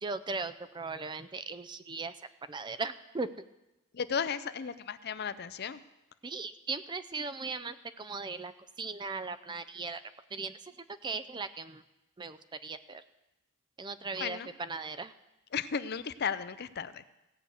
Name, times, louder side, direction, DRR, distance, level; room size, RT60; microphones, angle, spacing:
voice 1, 0.0-2.1 2.5-3.3 6.2-8.5 8.8-10.0 10.3-10.6 11.0-11.8 12.2-13.0 13.8-15.1, right 4 dB, 20° right, 13 dB, 0.4 m, -38 dB
voice 2, 3.9-5.8 14.2-14.5 15.5-17.0, left 6 dB, 50° left, 14 dB, 0.5 m, -34 dB
16.5 x 6.2 x 8.2 m, 0.96 s
head